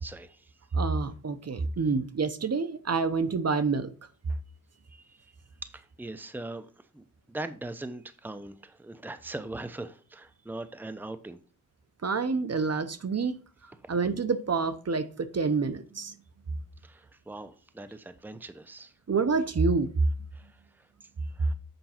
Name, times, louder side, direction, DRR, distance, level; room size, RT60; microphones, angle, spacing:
voice 1, 0.0-0.6 4.3-4.4 4.8-11.4 13.8-13.9 16.8-18.9 20.3-21.5, right 2 dB, 5° right, 0.7 m, -41 dB
voice 2, 0.7-3.9 12.0-13.4 13.9-16.1 19.1-19.9, right 4 dB, 50° right, 0.9 m, -27 dB
8.0 x 5.3 x 4.4 m
wide cardioid pair, 80°, 34 cm